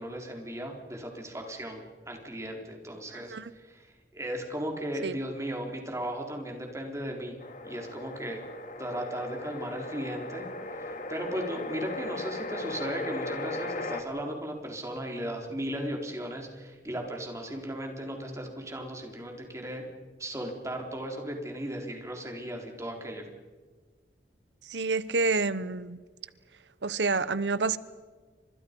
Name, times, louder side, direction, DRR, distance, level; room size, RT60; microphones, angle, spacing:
voice 1, 0.0-7.4 7.6-8.4 8.8-10.5 10.8-19.9 20.2-23.3, equal, 15° right, 4.1 m, -36 dB
voice 2, 3.1-3.5 5.0-5.2 24.7-26.0 26.8-27.8, right 3 dB, 85° right, 0.9 m, -28 dB
sound 1, 7.4-14.0, left 2 dB, 45° left, 2.6 m, -37 dB
30.0 x 26.5 x 5.4 m
head